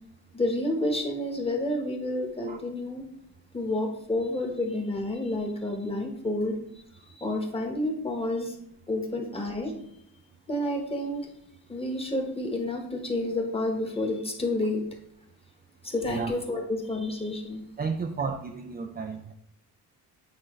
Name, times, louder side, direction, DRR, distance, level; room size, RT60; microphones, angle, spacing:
voice 1, 0.3-3.1 3.5-6.6 7.1-8.6 8.9-9.7 10.5-11.2 11.7-14.8 15.8-17.6, left 1 dB, 15° left, 1 dB, 1.2 m, -29 dB
voice 2, 17.8-19.3, right 5 dB, 25° right, 4 dB, 0.4 m, -32 dB
8.8 x 3.7 x 3.1 m, 0.72 s
cardioid pair, 115°, 41 cm